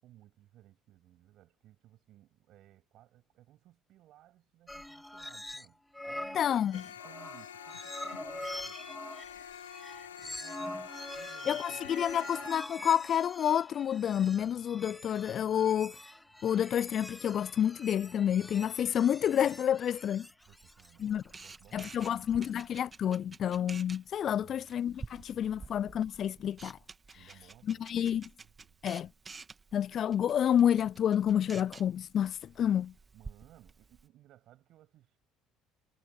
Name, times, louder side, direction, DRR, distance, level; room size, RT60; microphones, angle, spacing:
voice 1, 0.0-9.3 9.6-11.9 20.4-23.6 24.4-24.7 25.1-25.7 26.0-26.1 27.1-28.8 33.1-35.2, right 14 dB, 60° right, 7.5 m, -61 dB
sound 1, 4.7-5.7 5.9-22.7, left 1 dB, 5° left, 2.0 m, -44 dB
voice 2, 6.3-6.8 11.5-16.0 16.4-20.3 21.0-21.2 21.7-26.8 27.7-28.2 28.8-29.1 29.7-32.9, left 9 dB, 50° left, 0.3 m, -29 dB
sound 2, 6.7-12.5, left 10 dB, 85° left, 0.7 m, -47 dB
Camera, 20.4-34.1, right 4 dB, 30° right, 2.6 m, -51 dB
hypercardioid pair, 60°, 0 cm